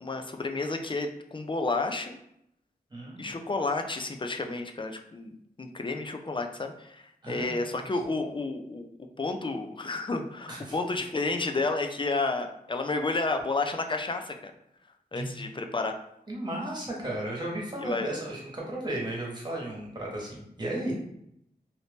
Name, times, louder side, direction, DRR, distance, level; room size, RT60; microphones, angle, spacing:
voice 1, 0.0-2.2 3.2-5.3 5.6-8.9 9.2-14.5 15.1-16.0 17.8-18.1, left 3 dB, 30° left, 5 dB, 0.4 m, -31 dB
voice 2, 2.9-3.3 7.2-7.9 10.5-10.7 15.1-15.3 16.3-20.9, right 1 dB, 25° right, -3 dB, 1.3 m, -34 dB
2.7 x 2.5 x 3.5 m, 0.76 s
cardioid pair, 55°, 16 cm